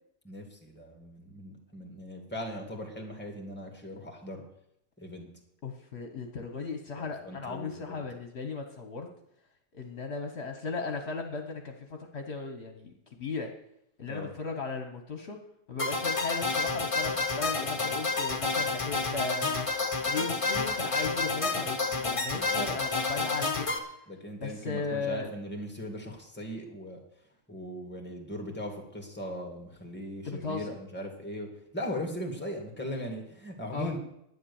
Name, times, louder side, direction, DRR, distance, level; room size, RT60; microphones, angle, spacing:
voice 1, 0.2-4.4 5.0-5.3 7.0-8.0 14.1-14.3 22.3-22.7 24.1-27.0 27.5-34.0, equal, 10° left, 2 dB, 2.3 m, -39 dB
voice 2, 5.6-9.1 9.7-11.7 12.1-12.9 13.2-13.5 14.0-15.4 15.7-19.7 20.1-23.7 24.4-25.3 30.2-30.7 33.7-34.0, left 4 dB, 60° left, 5 dB, 1.4 m, -36 dB
sound 1, 15.8-23.8, left 3 dB, 25° left, 1.2 m, -30 dB
11.0 x 9.6 x 7.1 m, 0.78 s
omnidirectional pair, 1.3 m